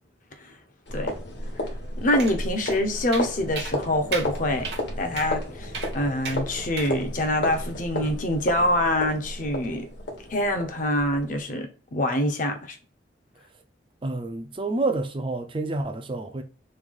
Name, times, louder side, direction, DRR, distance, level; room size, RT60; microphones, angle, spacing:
sound 1, 0.9-11.4, left 1 dB, 65° left, 1.1 m, -33 dB
voice 1, 2.0-4.7 5.0-9.9 10.3-12.8, left 1 dB, 45° left, 0.6 m, -25 dB
sound 2, 2.2-2.4 2.7-2.8 3.1-3.3 3.6-3.7 4.1-4.3 4.6-4.8 5.2-5.3 5.7-5.9 6.2-6.4 6.8-6.9, right 5 dB, 60° right, 0.8 m, -33 dB
voice 2, 14.0-16.4, right 2 dB, 25° right, 0.4 m, -28 dB
3.1 x 2.3 x 3.5 m
head